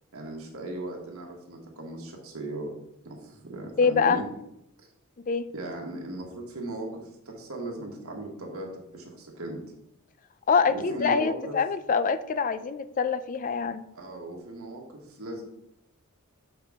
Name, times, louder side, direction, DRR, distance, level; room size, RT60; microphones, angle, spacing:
voice 1, 0.1-2.7 3.0-4.3 4.8-4.9 5.5-9.6 10.7-11.6 13.9-15.5, right 1 dB, 75° right, 0 dB, 1.5 m, -37 dB
voice 2, 3.8-4.2 5.3-5.5 10.5-13.9, left 5 dB, 40° left, 13 dB, 0.4 m, -25 dB
6.3 x 5.8 x 3.6 m, 0.81 s
head